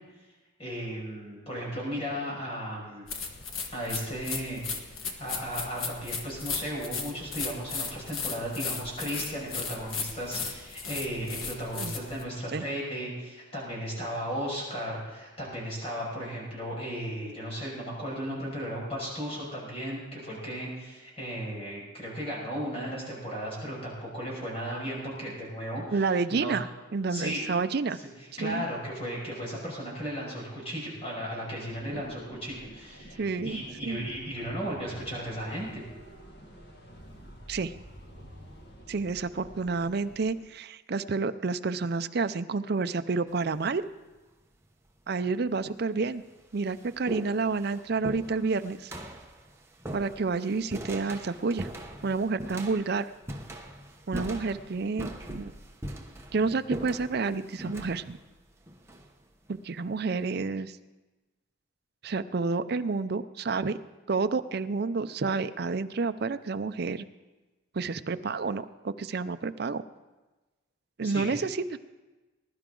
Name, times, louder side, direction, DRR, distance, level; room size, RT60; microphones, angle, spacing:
voice 1, 0.6-3.1 3.7-26.5 27.1-27.5 28.4-35.8 71.0-71.3, equal, 30° left, -4 dB, 5.8 m, -35 dB
sound 1, 3.1-12.2, left 5 dB, 90° left, 1.5 m, -36 dB
voice 2, 25.9-26.7 26.9-28.0 28.3-28.6 31.9-32.0 33.2-34.1 37.5-37.8 38.9-43.8 45.1-46.2 46.5-48.9 49.9-51.7 52.0-53.1 54.1-55.5 56.3-58.2 59.5-60.8 62.0-63.8 64.1-67.1 67.7-69.8 71.0-71.8, right 4 dB, 50° right, 11 dB, 0.5 m, -29 dB
sound 2, 31.7-40.4, equal, 50° left, 2.0 m, -49 dB
sound 3, 43.3-43.7 44.7-44.8 45.6-45.7 46.1-59.6, right 1 dB, 15° right, 0.9 m, -41 dB
20.5 x 11.5 x 3.8 m, 1.2 s
head